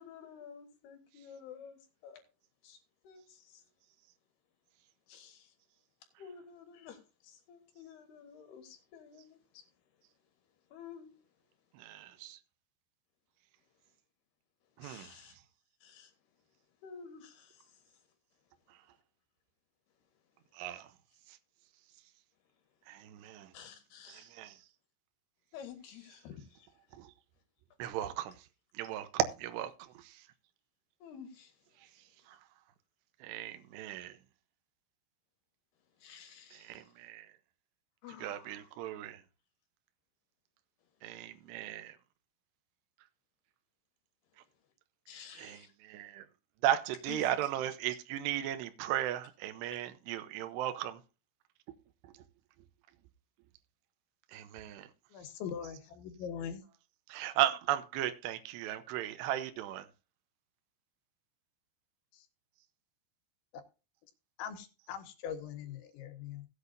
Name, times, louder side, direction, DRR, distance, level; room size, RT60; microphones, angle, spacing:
voice 1, 0.0-2.2 2.6-2.8 3.0-3.6 5.1-5.5 6.2-9.6 10.7-11.1 14.8-15.4 15.8-16.1 16.8-18.0 23.5-24.3 25.5-26.7 31.0-31.6 36.0-37.0 38.0-38.7 45.1-45.7 47.1-47.3 49.7-49.8, left 7 dB, 65° left, 3.6 m, -51 dB
voice 2, 11.7-12.4 14.8-15.2 20.5-20.9 22.9-23.5 24.1-24.5 26.9-27.1 27.8-28.3 28.8-30.2 32.3-32.4 33.2-34.2 36.5-37.3 38.2-39.2 41.0-42.0 45.4-46.3 46.6-51.0 54.3-54.9 57.1-59.9, right 12 dB, 75° right, 2.8 m, -36 dB
voice 3, 55.1-56.6 62.1-62.3 64.4-66.5, left 8 dB, 85° left, 3.6 m, -42 dB
17.0 x 8.3 x 2.6 m
omnidirectional pair, 5.2 m